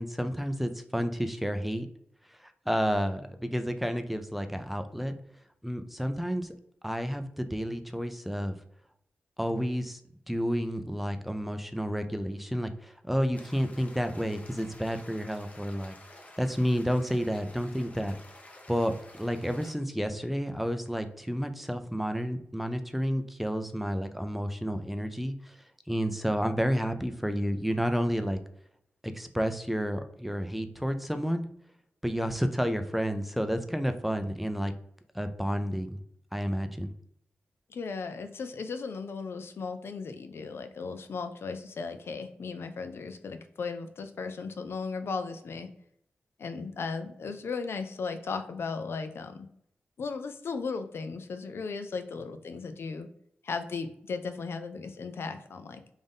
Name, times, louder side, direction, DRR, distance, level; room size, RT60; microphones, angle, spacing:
voice 1, 0.0-1.9 2.4-5.1 5.6-6.5 6.8-8.6 9.4-10.0 10.3-15.9 16.4-18.2 18.7-25.6 25.9-28.4 29.0-31.5 32.0-34.7 35.1-36.0 36.3-36.9, equal, 5° right, 8 dB, 0.4 m, -30 dB
sound 1, 13.3-19.7, left 1 dB, 30° left, 0.8 m, -51 dB
voice 2, 37.7-45.7 46.4-49.5 50.0-53.1 53.4-55.8, left 4 dB, 70° left, 8 dB, 0.4 m, -36 dB
3.5 x 2.6 x 3.7 m, 0.72 s
cardioid pair, 55°, 4 cm